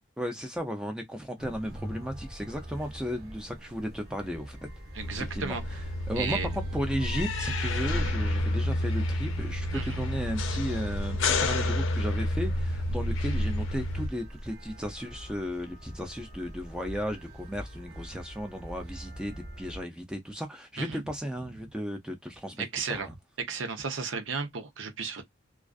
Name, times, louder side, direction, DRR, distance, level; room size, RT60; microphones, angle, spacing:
voice 1, 0.2-4.6 5.1-5.6 6.1-23.1, equal, 5° right, 0.3 m, -35 dB
sound 1, 1.4-19.8, equal, 50° right, 0.9 m, -44 dB
voice 2, 4.9-5.8 6.1-6.5 9.7-10.0 20.8-21.0 22.6-23.1 23.4-25.2, right 5 dB, 85° right, 0.7 m, -34 dB
sound 2, 5.0-14.1, left 1 dB, 85° left, 0.5 m, -29 dB
2.4 x 2.3 x 2.3 m
head